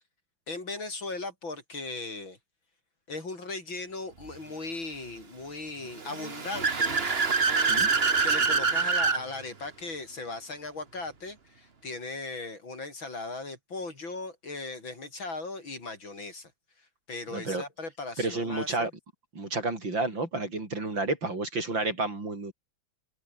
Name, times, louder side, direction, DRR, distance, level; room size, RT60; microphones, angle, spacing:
voice 1, 0.5-2.4 3.1-7.0 8.2-16.5 16.8-18.9, left 3 dB, 80° left, 6.7 m, -38 dB
Car / Accelerating revving vroom, 6.0-9.2, right 4 dB, 30° right, 1.8 m, -25 dB
voice 2, 17.3-17.6 18.2-18.9 19.3-22.5, right 2 dB, 70° right, 6.5 m, -30 dB
omnidirectional pair, 2.1 m